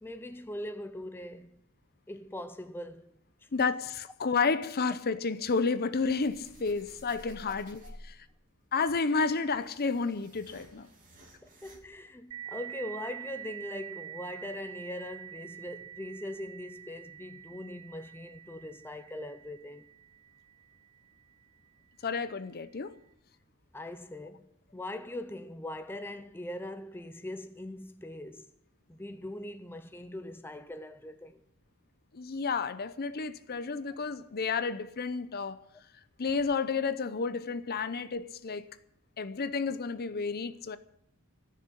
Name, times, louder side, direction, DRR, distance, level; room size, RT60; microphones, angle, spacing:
voice 1, 0.0-1.6 2.1-3.5 11.4-19.9 23.7-28.4 28.9-31.4, left 1 dB, 10° left, 0.5 m, -41 dB
voice 2, 3.5-8.2 8.7-10.9 22.0-23.0 32.1-35.6 36.2-38.7 39.2-40.8, left 4 dB, 45° left, 0.7 m, -31 dB
sound 1, 5.9-8.3 9.1-11.8, equal, 35° right, 2.6 m, -53 dB
sound 2, 12.3-21.5, right 10 dB, 80° right, 0.9 m, -46 dB
14.5 x 6.7 x 9.9 m
head